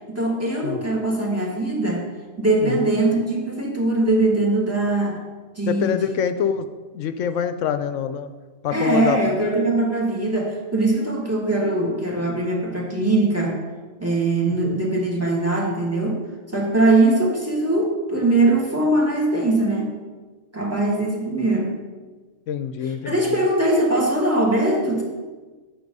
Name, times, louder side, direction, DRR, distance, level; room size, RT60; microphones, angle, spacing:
voice 1, 0.1-2.0 2.4-5.2 5.6-6.1 8.7-13.6 14.0-16.2 16.5-19.9 20.5-21.8 23.0-25.0, right 2 dB, 10° right, -1 dB, 1.8 m, -21 dB
voice 2, 2.6-2.9 5.6-6.7 6.9-8.3 8.6-9.2 22.5-23.4, left 8 dB, 80° left, 10 dB, 1.0 m, -25 dB
9.4 x 6.8 x 5.3 m, 1.3 s
omnidirectional pair, 1.3 m